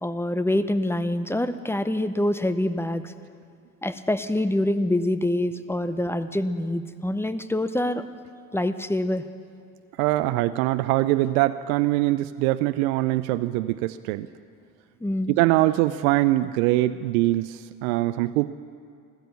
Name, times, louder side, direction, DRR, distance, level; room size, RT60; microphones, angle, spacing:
voice 1, 0.0-3.1 3.8-8.0 8.5-9.2 15.0-15.3, left 1 dB, 5° left, 11 dB, 0.7 m, -25 dB
voice 2, 10.0-14.3 15.3-18.5, right 17 dB, 70° right, 13 dB, 0.6 m, -23 dB
15.5 x 13.0 x 6.9 m, 2.3 s
hypercardioid pair, 75°, 45 cm